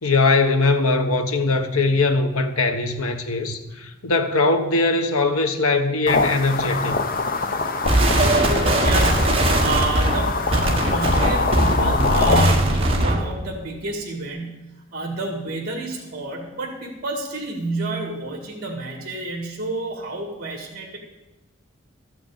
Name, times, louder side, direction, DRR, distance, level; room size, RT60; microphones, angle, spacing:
voice 1, 0.0-6.9, left 3 dB, 85° left, 6 dB, 1.2 m, -21 dB
sound 1, 6.1-12.5, left 3 dB, 40° left, 0.7 m, -24 dB
sound 2, 7.9-13.3, right 1 dB, 25° right, 1.4 m, -20 dB
voice 2, 8.4-14.6 14.9-21.0, right 2 dB, 45° right, 0 dB, 2.1 m, -29 dB
13.0 x 6.1 x 8.9 m, 1.0 s
head